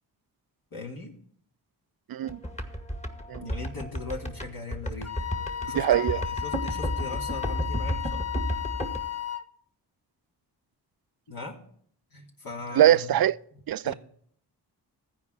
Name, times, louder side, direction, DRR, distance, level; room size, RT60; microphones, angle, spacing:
voice 1, 0.7-1.2 3.4-5.3 5.6-8.2 11.3-11.6 12.1-13.1 13.8-13.9, left 3 dB, 55° left, 2.8 m, -39 dB
voice 2, 2.1-2.4 3.3-3.4 5.8-6.2 12.7-13.3 13.7-13.9, right 12 dB, 55° right, 0.5 m, -22 dB
sound 1, 2.3-9.0, equal, 15° left, 2.1 m, -31 dB
Wind instrument woodwind instrument, 5.0-9.5, left 11 dB, 35° left, 0.9 m, -34 dB
14.5 x 4.9 x 7.6 m
cardioid pair, 50°, 43 cm